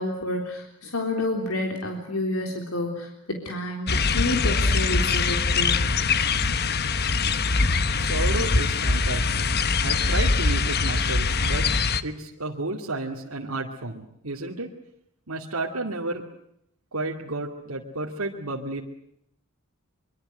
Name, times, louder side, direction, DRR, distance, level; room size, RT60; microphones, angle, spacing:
voice 1, 0.0-5.8, left 2 dB, 85° left, 2 dB, 3.7 m, -29 dB
sound 1, 3.9-12.0, left 4 dB, 50° left, 1.1 m, -23 dB
voice 2, 8.0-9.5 9.8-11.7 12.0-14.7 15.3-16.2 16.9-18.8, right 2 dB, 90° right, -1 dB, 2.4 m, -32 dB
24.5 x 24.0 x 7.9 m, 0.74 s
head